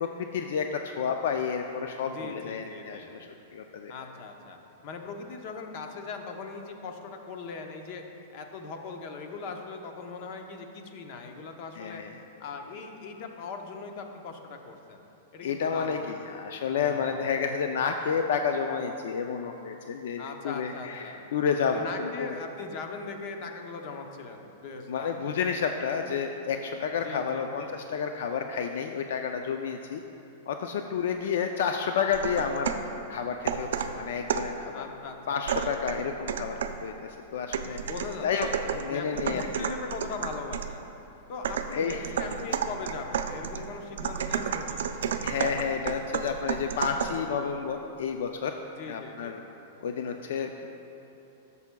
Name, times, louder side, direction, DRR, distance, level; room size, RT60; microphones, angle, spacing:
voice 1, 0.0-3.3 3.5-3.9 11.8-12.1 15.4-22.3 24.9-30.0 30.5-32.7 33.1-34.8 35.3-37.8 38.2-39.5 41.7-42.1 45.2-48.5 48.9-49.4 49.8-50.7, left 6 dB, 70° left, 5 dB, 0.4 m, -30 dB
voice 2, 2.1-3.1 3.9-4.6 4.8-8.0 8.3-12.0 12.4-15.0 15.3-16.1 16.8-17.1 20.2-21.2 21.7-25.3 27.0-27.7 34.7-35.7 37.8-38.5 38.9-40.9 41.3-44.9 48.8-49.4, left 4 dB, 40° left, 4 dB, 0.7 m, -40 dB
sound 1, 32.1-32.9 33.5-34.6 35.5-36.9 37.5-40.8 41.4-47.3, right 7 dB, 85° right, 0.4 m, -32 dB
13.0 x 6.8 x 2.2 m, 2.9 s
supercardioid pair, 165°, 0 cm